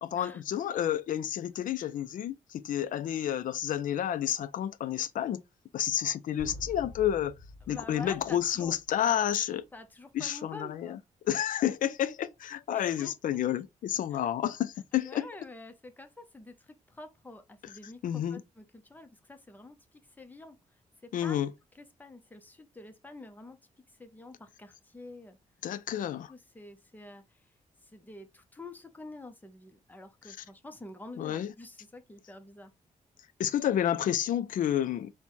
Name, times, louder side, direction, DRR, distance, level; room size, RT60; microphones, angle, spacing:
voice 1, 0.0-5.4 5.7-7.4 7.7-9.7 10.1-11.0 11.2-15.3 17.6-17.7 18.0-18.4 21.1-21.5 25.6-26.3 30.3-30.4 31.2-31.5 33.4-35.1, left 10 dB, 80° left, 0.4 m, -30 dB
sound 1, 6.4-9.3, left 1 dB, 30° left, 1.0 m, -47 dB
voice 2, 7.6-8.7 9.0-9.2 9.7-11.0 12.7-13.4 14.1-14.2 15.0-20.6 21.2-21.4 21.8-23.6 24.0-25.4 26.3-27.2 27.9-32.7, left 2 dB, 15° left, 0.7 m, -47 dB
4.1 x 2.2 x 4.5 m
wide cardioid pair, 145°, 14 cm